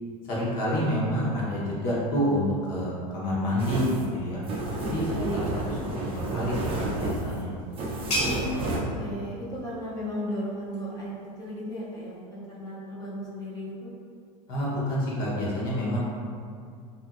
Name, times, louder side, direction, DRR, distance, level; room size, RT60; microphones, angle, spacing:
voice 1, 0.3-4.4 4.8-5.4 5.8-7.5 14.5-16.0, equal, 55° left, -6 dB, 1.0 m, -28 dB
sound 1, 3.6-8.8, right 2 dB, 30° right, 0.5 m, -31 dB
voice 2, 5.0-5.4 8.2-13.9, equal, 20° left, -7 dB, 0.6 m, -35 dB
sound 2, 6.8-12.2, equal, 75° left, 1.5 m, -37 dB
2.6 x 2.5 x 2.4 m, 2.3 s
hypercardioid pair, 105°, 20 cm